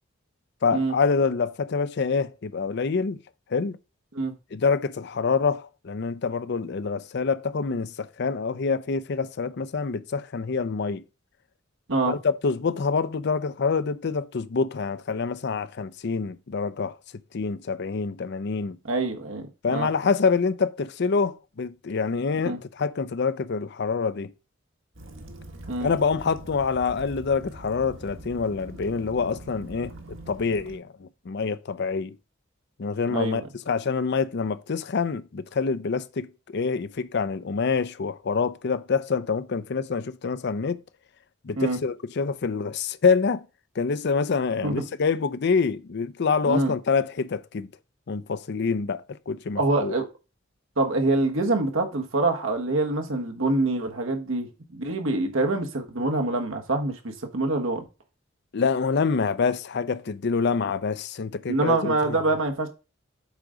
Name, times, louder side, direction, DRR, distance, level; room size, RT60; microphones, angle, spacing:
voice 1, 0.6-3.2 3.5-3.8 4.5-11.0 12.1-17.0 17.3-18.8 19.6-24.3 25.8-32.2 32.8-40.8 41.4-43.4 43.8-47.7 48.1-49.9 58.5-62.2, left 5 dB, 60° left, 0.5 m, -26 dB
voice 2, 18.8-19.9 22.5-22.6 25.7-25.9 33.1-33.4 41.6-41.8 44.6-44.8 46.5-46.7 49.6-50.0 50.8-57.8 61.5-62.7, right 2 dB, 85° right, 1.4 m, -25 dB
Waves surf / Splash splatter / Trickle dribble, 24.9-30.8, right 1 dB, 70° right, 1.6 m, -43 dB
8.2 x 3.9 x 4.9 m
head